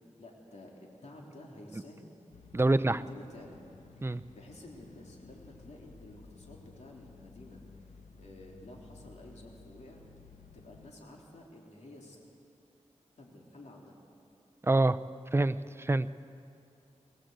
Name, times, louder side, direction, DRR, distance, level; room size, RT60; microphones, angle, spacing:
voice 1, 0.2-2.1 2.6-3.6 4.0-7.6 8.2-10.0 10.5-12.2 13.2-14.0, left 1 dB, 65° left, -1 dB, 3.3 m, -51 dB
sound 1, 2.3-10.9, left 4 dB, 85° left, 1.3 m, -55 dB
voice 2, 2.5-3.0 4.0-4.2 14.7-15.0 15.3-16.1, right 2 dB, 20° right, 11 dB, 0.6 m, -26 dB
21.0 x 19.5 x 8.1 m, 2.5 s
cardioid pair, 60°, 12 cm